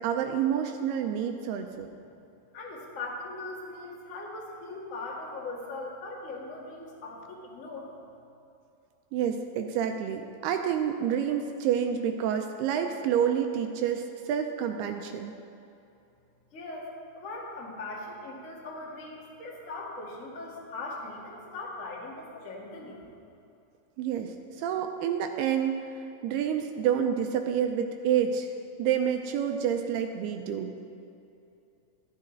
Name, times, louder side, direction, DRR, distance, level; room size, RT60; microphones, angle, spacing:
voice 1, 0.0-1.9 9.1-15.3 24.0-28.5 28.8-30.7, right 8 dB, 85° right, 5 dB, 2.4 m, -28 dB
voice 2, 2.5-7.9 16.5-23.0, left 2 dB, 60° left, -4 dB, 0.8 m, -40 dB
13.5 x 12.0 x 3.9 m, 2.7 s
omnidirectional pair, 4.9 m